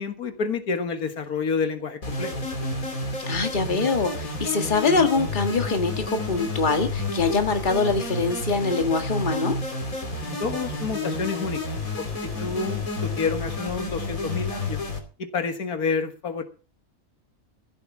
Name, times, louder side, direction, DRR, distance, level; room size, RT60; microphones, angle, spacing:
voice 1, 0.0-2.4 10.2-12.1 12.4-14.8 15.2-16.4, left 5 dB, 90° left, 7 dB, 2.0 m, -29 dB
sound 1, 2.0-15.0, left 2 dB, 65° left, 3.2 m, -30 dB
voice 2, 3.3-9.6, left 4 dB, 35° left, 6 dB, 1.8 m, -24 dB
15.5 x 8.1 x 6.0 m, 0.37 s
omnidirectional pair, 1.5 m